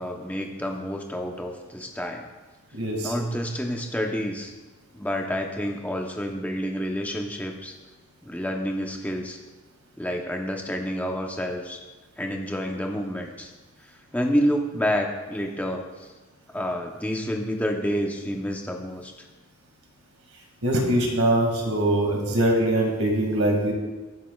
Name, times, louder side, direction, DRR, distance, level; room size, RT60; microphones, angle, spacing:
voice 1, 0.0-2.3 3.0-4.5 4.9-7.7 8.2-9.4 10.0-11.8 12.2-13.5 14.1-16.1 16.5-19.1, equal, 5° left, 2 dB, 0.8 m, -29 dB
voice 2, 2.7-3.1 20.6-23.7, right 1 dB, 70° right, 0 dB, 2.1 m, -22 dB
19.5 x 6.6 x 2.4 m, 1.2 s
head